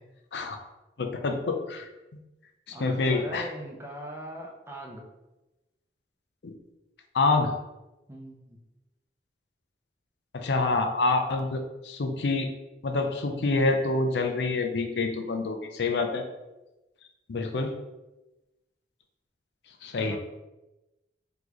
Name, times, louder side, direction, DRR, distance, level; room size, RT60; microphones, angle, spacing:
voice 1, 1.0-1.9 2.7-3.5 6.4-6.5 7.1-7.5 10.3-12.5 12.8-16.2 17.3-17.7 19.8-20.2, left 3 dB, 80° left, 5 dB, 0.5 m, -27 dB
voice 2, 2.7-5.0 8.1-8.6 20.0-20.2, equal, 15° right, -1 dB, 0.6 m, -40 dB
4.0 x 3.3 x 3.0 m, 1.0 s
head